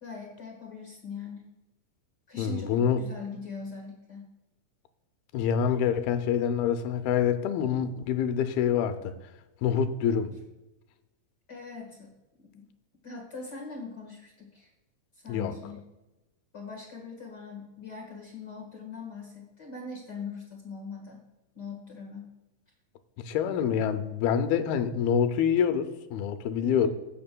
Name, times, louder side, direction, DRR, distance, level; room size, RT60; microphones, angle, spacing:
voice 1, 0.0-1.5 2.3-4.3 11.5-12.6 13.0-14.7 15.1-15.8 16.5-21.2 21.5-22.3 26.6-26.9, left 4 dB, 60° left, 0 dB, 1.0 m, -41 dB
voice 2, 2.4-3.0 5.3-9.1 9.6-10.3 15.3-15.5 23.2-26.9, left 8 dB, 85° left, 9 dB, 2.6 m, -26 dB
17.0 x 8.6 x 2.2 m, 1.0 s
omnidirectional pair, 4.4 m